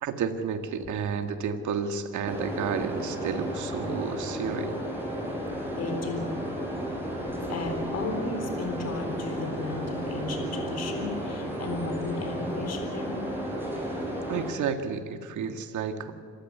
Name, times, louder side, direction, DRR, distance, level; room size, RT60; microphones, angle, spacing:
voice 1, 0.0-4.8 14.3-16.1, right 6 dB, 75° right, 7 dB, 2.0 m, -31 dB
sound 1, 2.2-14.5, equal, 5° right, 7.6 m, -33 dB
voice 2, 5.7-6.3 7.5-13.2, left 3 dB, 55° left, 4 dB, 3.9 m, -34 dB
26.5 x 15.0 x 8.4 m, 2.3 s
cardioid pair, 90°, 30 cm